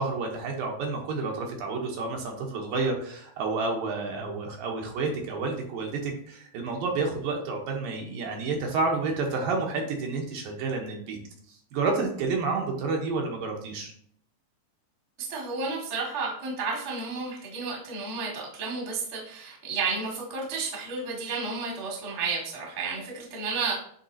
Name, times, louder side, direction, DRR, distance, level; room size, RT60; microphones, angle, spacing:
voice 1, 0.0-11.2 11.7-13.9, right 3 dB, 75° right, 1 dB, 2.5 m, -30 dB
voice 2, 15.2-23.7, right 4 dB, 35° right, -2 dB, 1.1 m, -32 dB
10.0 x 3.5 x 2.7 m, 0.63 s
omnidirectional pair, 4.4 m